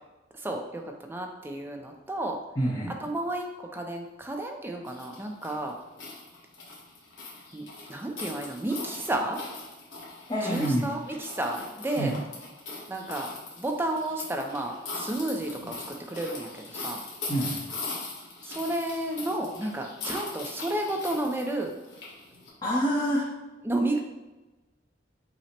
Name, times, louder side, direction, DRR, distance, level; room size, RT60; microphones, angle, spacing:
voice 1, 0.3-0.8 1.1-2.4 3.0-5.7 7.5-9.4 10.4-12.1 12.9-13.3 13.6-15.8 16.1-17.0 18.4-21.7 23.6-24.0, right 1 dB, 10° right, 2 dB, 0.4 m, -31 dB
voice 2, 2.6-3.0 10.3-10.9 12.0-12.2 17.3-17.7 22.6-23.4, equal, 25° left, -7 dB, 0.7 m, -27 dB
sound 1, 4.8-22.5, left 3 dB, 80° left, 1.3 m, -40 dB
5.7 x 2.1 x 4.3 m, 1.1 s
head